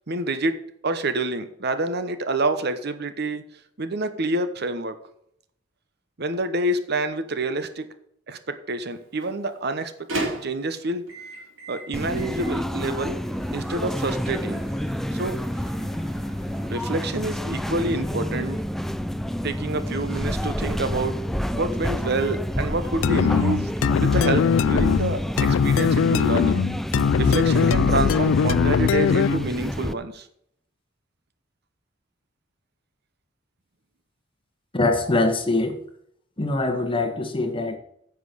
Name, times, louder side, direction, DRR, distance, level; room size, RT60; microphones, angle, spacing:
voice 1, 0.1-0.6 0.8-3.5 3.8-5.0 6.2-7.9 8.3-9.9 10.2-11.0 11.7-13.2 13.5-14.6 15.1-15.4 16.7-18.6 19.4-21.2 21.5-23.7 24.0-26.7 27.2-30.3, right 2 dB, 55° right, 10 dB, 0.9 m, -27 dB
Microwave oven, 8.9-17.1, right 2 dB, 80° right, 3.8 m, -38 dB
sound 1, 11.9-29.9, equal, ahead, 0.4 m, -29 dB
sound 2, 23.0-29.5, left 6 dB, 85° left, 0.4 m, -20 dB
voice 2, 34.7-35.8 36.4-37.8, left 2 dB, 25° left, 6 dB, 1.4 m, -23 dB
9.9 x 6.1 x 6.9 m, 0.71 s
head